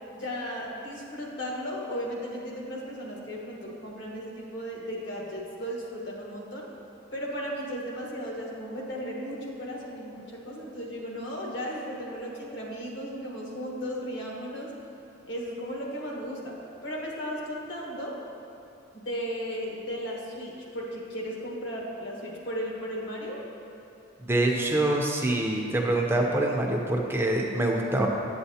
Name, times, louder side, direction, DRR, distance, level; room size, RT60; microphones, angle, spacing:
voice 1, 0.1-6.7 7.1-14.7 15.3-16.5 16.8-18.2 18.9-23.4, equal, 60° left, -2 dB, 1.3 m, -35 dB
voice 2, 24.3-28.1, right 1 dB, 10° right, 0 dB, 0.6 m, -25 dB
8.5 x 8.0 x 2.8 m, 2.7 s
head